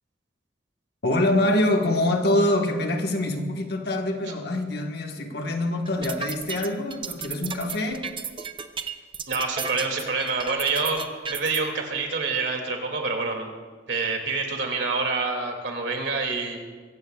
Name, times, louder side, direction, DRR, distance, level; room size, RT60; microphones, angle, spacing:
voice 1, 1.0-8.1, left 1 dB, 60° left, 1.4 m, -25 dB
sound 1, 5.9-11.6, right 6 dB, 25° right, 0.6 m, -33 dB
voice 2, 9.3-11.0 11.3-13.5 13.9-16.6, right 4 dB, 70° right, 2.4 m, -27 dB
24.5 x 15.5 x 2.4 m
head